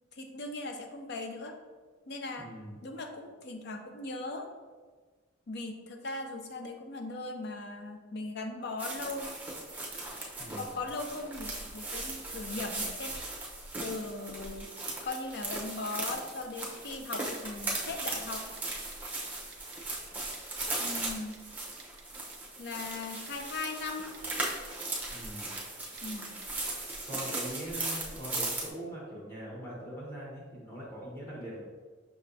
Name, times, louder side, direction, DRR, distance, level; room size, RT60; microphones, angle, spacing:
voice 1, 0.1-1.6 2.1-2.5 2.8-4.5 5.5-9.3 10.5-13.2 13.8-14.7 15.0-18.5 20.8-21.4 22.6-24.2 26.0-26.4, left 3 dB, 60° left, 5 dB, 0.5 m, -39 dB
voice 2, 2.4-2.8 10.4-10.8 25.1-25.5 27.0-31.6, right 1 dB, 15° left, -6 dB, 1.4 m, -42 dB
sound 1, 8.8-28.7, right 2 dB, 10° right, 0.7 m, -38 dB
Typing, 18.6-19.0 19.2-19.3 19.5-19.8 20.3-20.4 21.0-21.4 21.8-22.4 22.7-23.7 24.1-24.9 25.1-25.2 25.6-25.7 26.0-26.2 26.4-27.0 27.4-27.5, right 7 dB, 55° right, 0.5 m, -54 dB
5.7 x 3.3 x 2.6 m, 1.4 s
head